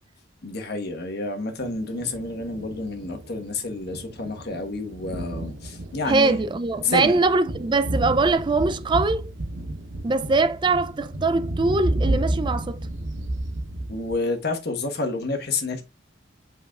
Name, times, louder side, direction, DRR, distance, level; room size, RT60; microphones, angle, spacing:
voice 1, 0.4-6.4 6.8-7.2 13.9-15.8, left 3 dB, 55° left, 1.3 m, -29 dB
Thunder, 1.6-14.2, right 1 dB, 85° right, 1.1 m, -31 dB
voice 2, 6.1-9.3 10.0-12.8, right 3 dB, 25° right, 0.4 m, -22 dB
7.6 x 5.4 x 2.4 m
head